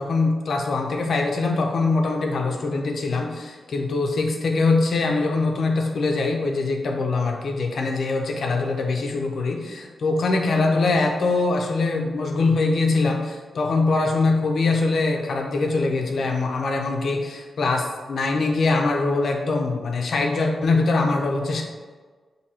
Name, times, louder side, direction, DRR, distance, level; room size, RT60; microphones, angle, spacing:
voice 1, 0.0-21.6, left 3 dB, 60° left, 2 dB, 0.6 m, -23 dB
6.3 x 2.7 x 2.8 m, 1.4 s
wide cardioid pair, 135°, 0 cm